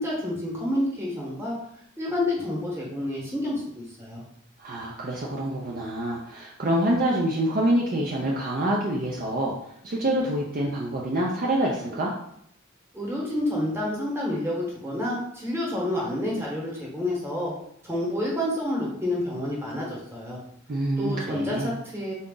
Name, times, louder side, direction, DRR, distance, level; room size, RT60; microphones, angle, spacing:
voice 1, 0.0-1.5 2.0-4.2 12.9-17.5 17.8-20.4 21.0-22.1, left 1 dB, 10° right, -4 dB, 1.1 m, -29 dB
voice 2, 4.6-9.5 9.8-12.1 20.7-21.7, right 1 dB, 45° right, -2 dB, 0.5 m, -26 dB
3.9 x 2.4 x 3.7 m, 0.71 s
head